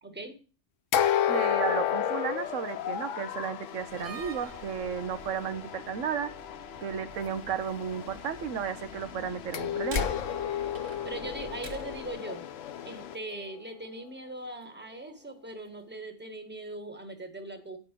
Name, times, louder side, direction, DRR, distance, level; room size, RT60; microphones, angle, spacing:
voice 1, 0.0-0.4 11.0-12.4 12.8-17.8, right 2 dB, 10° right, 6 dB, 1.6 m, -40 dB
sound 1, 0.9-3.6 9.5-13.6, left 10 dB, 85° left, 1.0 m, -30 dB
voice 2, 1.3-6.3 6.8-10.1, right 7 dB, 85° right, 10 dB, 1.2 m, -33 dB
sound 2, 1.4-13.2, left 9 dB, 60° left, 0.8 m, -44 dB
Slam, 3.8-12.2, left 1 dB, 50° right, 1.4 m, -43 dB
10.0 x 5.3 x 7.5 m, 0.34 s
omnidirectional pair, 1.3 m